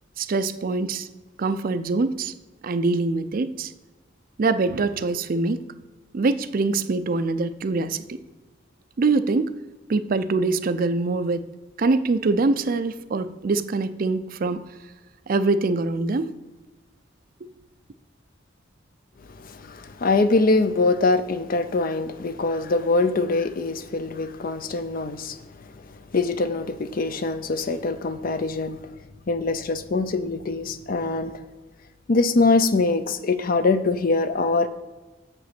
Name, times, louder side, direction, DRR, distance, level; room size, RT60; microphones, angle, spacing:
voice 1, 0.2-1.1 1.4-2.3 2.6-3.7 4.4-5.7 6.1-8.2 9.0-9.5 9.9-11.5 11.8-14.6 15.3-16.3, right 3 dB, 50° right, 12 dB, 0.4 m, -24 dB
voice 2, 19.3-28.9 29.3-31.4 32.1-34.7, left 3 dB, 50° left, 11 dB, 0.5 m, -23 dB
7.2 x 5.6 x 5.9 m, 1.2 s
head